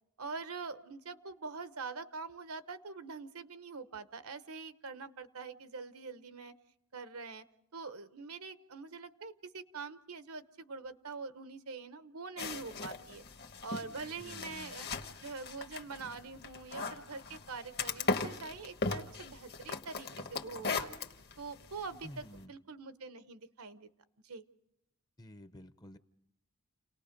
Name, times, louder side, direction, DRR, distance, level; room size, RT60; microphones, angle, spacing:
voice 1, 0.2-6.5 6.9-7.4 7.7-13.2 13.6-14.9 15.2-20.9 21.4-23.9 24.2-24.4, right 4 dB, 75° right, 11 dB, 1.0 m, -44 dB
sound 1, 12.4-22.4, left 4 dB, 50° left, 1.3 m, -39 dB
voice 2, 14.2-14.8 22.0-22.5 25.2-26.0, equal, 20° left, 11 dB, 0.7 m, -51 dB
29.5 x 18.5 x 5.2 m, 0.83 s
head